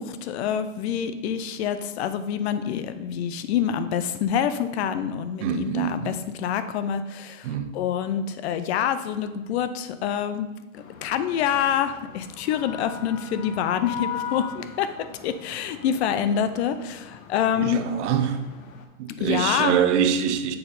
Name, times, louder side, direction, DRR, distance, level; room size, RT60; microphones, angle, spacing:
voice 1, 0.0-7.5 7.7-10.5 10.7-17.8 19.2-19.8, left 8 dB, 55° left, 0.6 m, -26 dB
voice 2, 5.4-6.2 7.4-7.8 17.5-18.5 19.0-20.6, right 8 dB, 60° right, 0.7 m, -25 dB
sound 1, 10.7-18.8, left 8 dB, 85° left, 0.8 m, -40 dB
6.8 x 4.1 x 3.4 m
hypercardioid pair, 120°, 40 cm